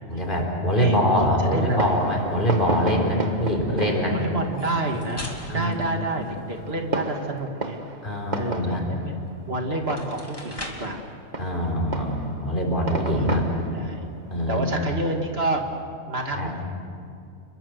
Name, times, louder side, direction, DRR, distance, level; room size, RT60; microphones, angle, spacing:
voice 1, 0.1-4.2 5.5-6.3 8.0-8.8 11.4-13.5 14.3-14.9 16.3-16.5, equal, 45° left, 0 dB, 4.3 m, -24 dB
voice 2, 0.8-2.0 4.1-5.3 5.5-7.8 8.4-9.2 9.5-11.0 13.1-13.4 13.7-14.0 14.5-15.7 16.1-16.6, right 2 dB, 55° right, 3 dB, 2.2 m, -28 dB
Fireworks, 1.6-15.7, right 2 dB, 40° right, 1.4 m, -34 dB
sound 1, 4.4-6.8 9.3-9.4 9.8-11.0, left 1 dB, 20° left, 2.6 m, -40 dB
29.5 x 22.5 x 6.5 m, 2.5 s
omnidirectional pair, 1.2 m